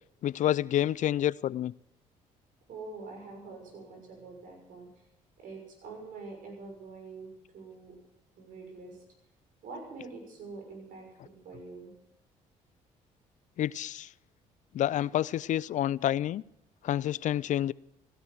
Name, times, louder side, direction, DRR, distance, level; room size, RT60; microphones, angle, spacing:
voice 1, 0.2-1.7 13.6-14.1 14.7-16.4 16.8-17.7, left 12 dB, 60° left, 0.5 m, -28 dB
voice 2, 2.7-5.1 5.4-8.0 8.4-9.0 9.6-11.9, right 3 dB, 70° right, 6.3 m, -45 dB
15.5 x 13.0 x 6.3 m
supercardioid pair, 70°, 15 cm